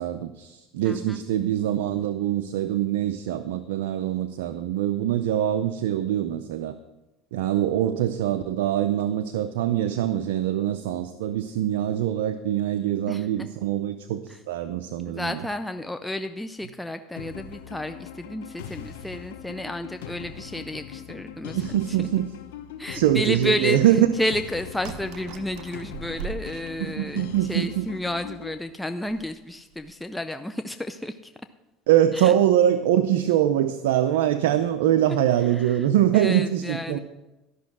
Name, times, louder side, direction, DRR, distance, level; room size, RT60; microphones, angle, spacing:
voice 1, 0.0-6.8 7.3-14.2 14.5-15.4 21.5-22.3 22.9-24.1 26.8-27.9 31.9-37.0, right 11 dB, 85° right, 10 dB, 0.5 m, -23 dB
voice 2, 0.8-1.2 13.1-13.3 14.3-14.4 15.1-21.6 22.8-23.8 24.2-27.2 27.5-31.3 32.1-32.3 35.6-35.8 36.1-37.0, left 1 dB, 5° left, 8 dB, 0.5 m, -31 dB
sound 1, 17.2-28.6, left 8 dB, 85° left, 0.8 m, -41 dB
sound 2, 24.8-27.4 27.9-28.0 28.3-28.4 29.0-29.3 29.7-29.9, right 6 dB, 65° right, 1.0 m, -40 dB
13.0 x 6.1 x 6.1 m, 1.0 s
supercardioid pair, 100°, 0 cm